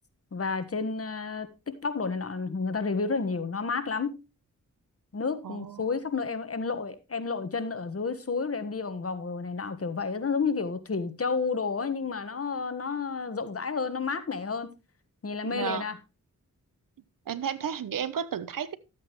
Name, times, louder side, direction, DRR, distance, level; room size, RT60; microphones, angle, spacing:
voice 1, 0.3-4.1 5.1-14.7 15.2-16.0, left 4 dB, 45° left, 1.4 m, -31 dB
voice 2, 5.4-5.9 15.4-15.8 17.3-18.8, right 8 dB, 80° right, 0.9 m, -33 dB
12.5 x 8.4 x 3.1 m
cardioid pair, 60°, 33 cm